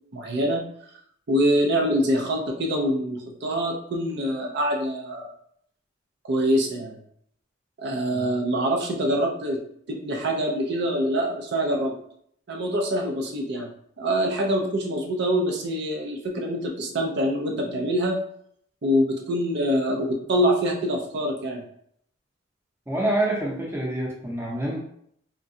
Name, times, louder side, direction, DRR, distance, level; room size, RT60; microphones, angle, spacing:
voice 1, 0.1-0.6 1.3-5.4 6.2-7.0 7.8-9.6 9.9-11.9 12.5-13.7 14.0-18.2 18.8-21.6, equal, 60° right, 1 dB, 0.5 m, -25 dB
voice 2, 22.9-24.8, right 1 dB, 15° right, -3 dB, 0.7 m, -26 dB
3.6 x 2.2 x 2.6 m, 0.67 s
head